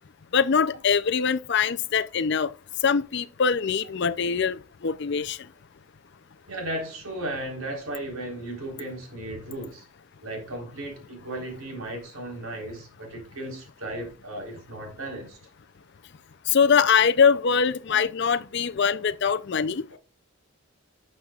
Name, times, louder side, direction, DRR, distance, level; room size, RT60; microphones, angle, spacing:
voice 1, 0.3-2.5 2.8-5.4 16.5-19.8, left 6 dB, 50° left, 0.5 m, -23 dB
voice 2, 6.5-9.8 10.2-15.4 17.9-18.0, right 1 dB, 75° right, 4.0 m, -35 dB
12.0 x 7.6 x 2.4 m
head